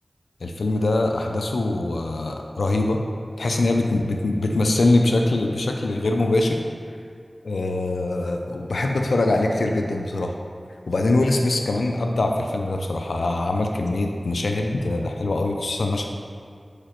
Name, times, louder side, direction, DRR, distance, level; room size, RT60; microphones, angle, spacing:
voice 1, 0.4-3.0 3.4-6.6 7.4-10.4 10.9-16.1, left 2 dB, 90° left, 2 dB, 0.4 m, -23 dB
4.9 x 4.8 x 4.4 m, 2.2 s
wide cardioid pair, 45°, 0 cm